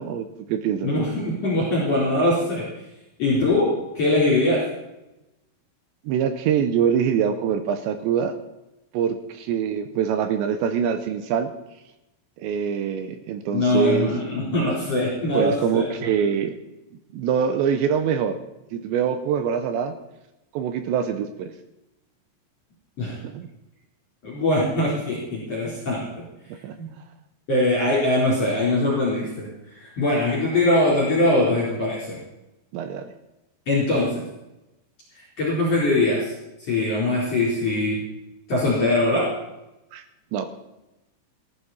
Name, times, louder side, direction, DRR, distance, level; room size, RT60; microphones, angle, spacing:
voice 1, 0.0-0.9 6.1-8.4 8.9-11.5 12.4-14.1 15.3-16.6 17.1-18.4 18.7-19.9 20.5-21.5 23.2-23.5 26.5-26.8 32.7-33.1 39.9-40.0 40.3-40.5, right 7 dB, 85° right, 9 dB, 2.6 m, -24 dB
voice 2, 0.8-2.7 3.2-4.6 13.5-15.8 23.0-23.2 24.2-26.2 26.8-26.9 27.5-32.2 33.7-34.2 35.1-36.3 36.6-38.0 38.5-39.3, left 2 dB, 35° left, -5 dB, 4.8 m, -22 dB
18.5 x 11.5 x 4.3 m, 0.95 s
omnidirectional pair, 5.8 m